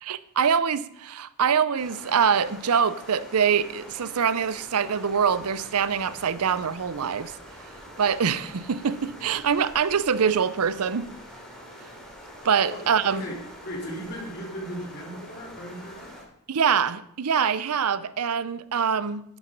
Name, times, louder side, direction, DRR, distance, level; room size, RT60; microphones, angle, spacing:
voice 1, 0.0-7.4 8.0-11.1 12.4-13.2 16.5-19.2, right 7 dB, 85° right, 0.6 m, -24 dB
sound 1, 1.7-16.2, equal, 5° left, 2.9 m, -45 dB
voice 2, 12.7-16.1, equal, 45° left, 3.8 m, -37 dB
11.5 x 9.7 x 5.3 m
head